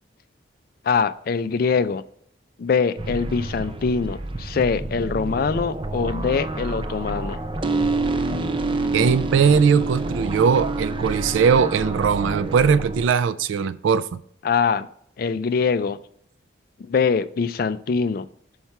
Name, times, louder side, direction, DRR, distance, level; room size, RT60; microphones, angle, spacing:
voice 1, 0.8-2.0 2.6-7.4 14.4-14.9 15.2-16.0 16.9-18.3, left 5 dB, 50° left, 0.3 m, -23 dB
sound 1, 3.0-13.1, right 2 dB, 25° right, 0.5 m, -28 dB
voice 2, 8.9-14.1, right 6 dB, 85° right, 0.3 m, -19 dB
5.8 x 5.4 x 4.7 m
head